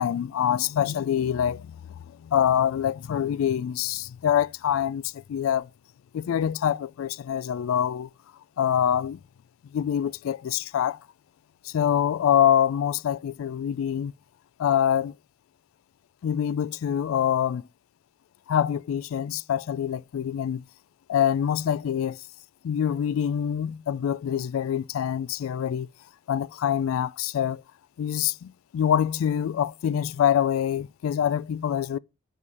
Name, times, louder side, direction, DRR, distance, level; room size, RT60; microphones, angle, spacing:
voice 1, 0.0-5.7 6.1-8.1 8.6-9.2 9.7-11.0 11.6-14.1 14.6-15.1 16.2-17.7 18.5-20.6 21.1-22.2 22.6-25.9 26.3-27.6 28.0-32.0, left 9 dB, 80° left, 0.3 m, -25 dB
5.5 x 5.3 x 4.6 m
head